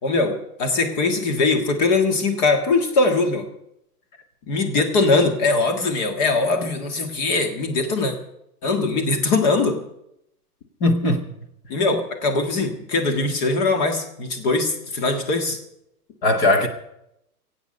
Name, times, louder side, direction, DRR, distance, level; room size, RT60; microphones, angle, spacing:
voice 1, 0.0-3.5 4.5-8.1 8.6-9.8 11.7-15.6, left 3 dB, 30° left, 1.7 m, -21 dB
voice 2, 10.8-11.3 16.2-16.7, left 2 dB, 10° left, 0.6 m, -18 dB
23.0 x 8.4 x 5.3 m
hypercardioid pair, 165°, 46 cm